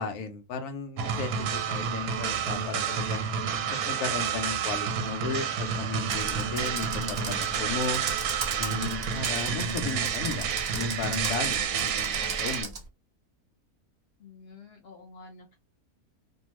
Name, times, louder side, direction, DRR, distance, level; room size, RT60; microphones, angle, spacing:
voice 1, 0.0-3.3 3.7-8.0 8.6-10.5 10.7-12.7, left 4 dB, 85° left, 1.1 m, -35 dB
sound 1, 1.0-12.6, right 7 dB, 90° right, 1.1 m, -30 dB
Computer keyboard, 6.1-12.8, right 4 dB, 50° right, 0.5 m, -37 dB
voice 2, 14.2-15.6, left 3 dB, 65° left, 0.6 m, -49 dB
2.6 x 2.3 x 3.0 m
omnidirectional pair, 1.6 m